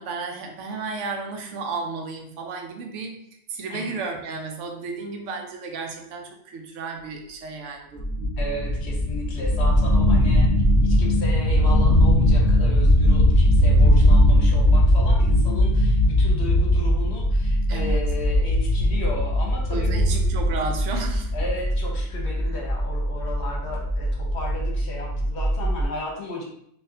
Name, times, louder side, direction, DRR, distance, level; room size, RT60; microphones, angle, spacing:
voice 1, 0.0-8.1 13.8-14.1 17.7-18.0 19.7-21.3 22.4-22.5, right 4 dB, 80° right, 3 dB, 1.0 m, -33 dB
sound 1, 8.0-25.8, equal, 35° left, 1.1 m, -20 dB
voice 2, 8.4-10.5 10.8-20.2 21.3-26.4, left 1 dB, 65° left, -1 dB, 1.1 m, -34 dB
4.0 x 2.8 x 2.6 m, 0.72 s
omnidirectional pair, 1.2 m